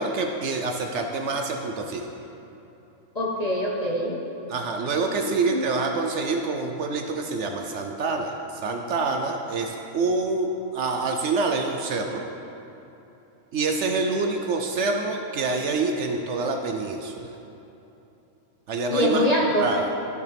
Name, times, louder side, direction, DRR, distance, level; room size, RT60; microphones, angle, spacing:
voice 1, 0.0-2.1 4.5-12.2 13.5-17.3 18.7-19.9, right 3 dB, 65° right, 3 dB, 0.8 m, -26 dB
voice 2, 3.1-4.2 5.2-5.6 18.9-19.7, left 1 dB, 35° left, -2 dB, 0.7 m, -24 dB
13.0 x 6.5 x 3.5 m, 2.9 s
omnidirectional pair, 1.5 m